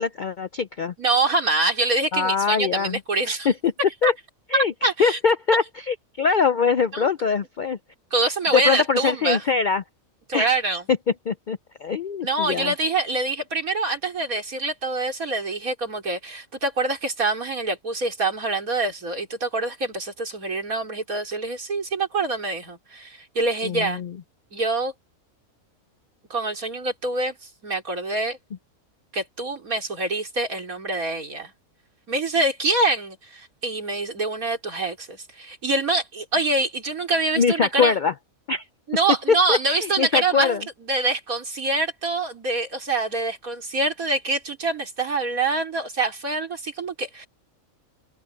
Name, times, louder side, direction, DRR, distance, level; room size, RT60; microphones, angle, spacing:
voice 1, 0.0-0.9 2.1-3.0 3.5-3.7 4.0-4.1 4.5-7.8 8.5-9.8 10.3-10.5 10.9-11.0 11.3-12.7 23.6-24.1 37.4-38.1 38.5-38.6 39.5-40.6, left 5 dB, 65° left, 0.4 m, -23 dB
voice 2, 1.0-3.5 4.0-4.1 4.8-5.2 6.9-7.1 8.1-9.4 10.3-10.8 12.2-24.0 24.5-24.9 26.3-28.4 29.1-31.5 32.1-37.9 38.9-40.6 40.9-47.3, right 2 dB, 90° right, 4.4 m, -25 dB
omnidirectional pair, 1.4 m